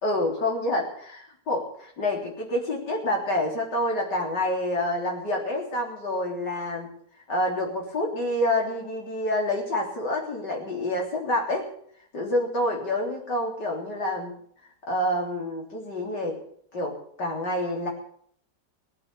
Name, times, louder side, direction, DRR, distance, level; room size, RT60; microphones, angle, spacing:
voice 1, 0.0-6.9 7.3-11.7 12.1-14.3 14.9-16.4 16.7-17.9, left 1 dB, 80° left, 0 dB, 4.2 m, -27 dB
18.0 x 9.0 x 8.5 m, 0.63 s
omnidirectional pair, 1.8 m